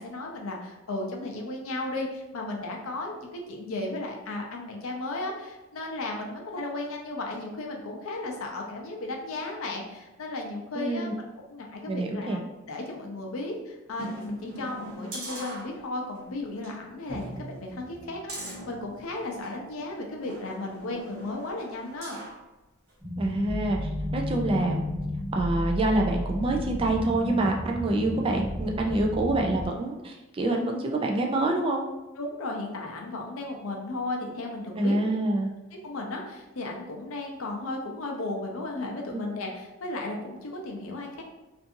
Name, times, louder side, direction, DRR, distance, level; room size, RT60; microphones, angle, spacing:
voice 1, 0.0-11.1 11.5-12.4 12.7-22.2 32.2-35.0 35.8-41.2, left 2 dB, 75° left, 1 dB, 0.6 m, -35 dB
voice 2, 10.8-11.1 11.9-12.4 23.2-24.9 25.3-31.8 34.7-35.5 39.1-39.3, right 2 dB, 25° right, 1 dB, 0.3 m, -26 dB
sound 1, 13.9-16.2 16.6-16.7 17.1-19.6 20.2-22.4 22.9-23.0, right 1 dB, 90° right, 0.9 m, -41 dB
sound 2, 23.0-29.7, left 1 dB, 5° right, 1.0 m, -32 dB
2.5 x 2.5 x 2.5 m, 1.1 s
head